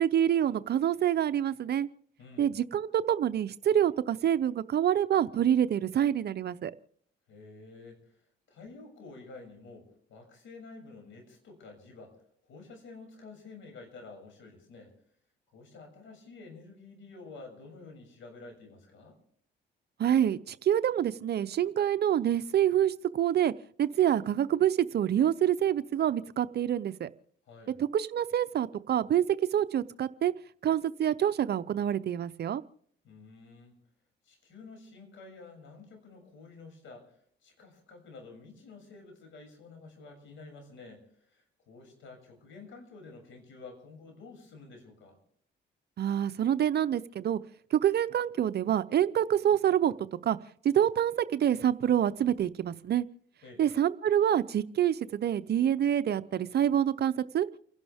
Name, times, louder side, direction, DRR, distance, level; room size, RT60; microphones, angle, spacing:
voice 1, 0.0-1.9 2.4-6.7 20.0-23.5 23.8-27.1 27.9-29.3 29.5-30.3 30.6-32.6 46.0-47.4 47.7-49.9 50.2-50.4 50.6-53.0 53.6-57.5, right 10 dB, 55° right, 13 dB, 0.7 m, -26 dB
voice 2, 2.2-2.5 7.3-8.2 8.5-12.2 12.4-14.9 15.5-19.2 27.5-27.8 33.0-33.8 34.2-45.2 53.4-53.6, left 3 dB, 75° left, 3 dB, 6.8 m, -50 dB
29.5 x 11.5 x 3.5 m, 0.64 s
cardioid pair, 90°, 20 cm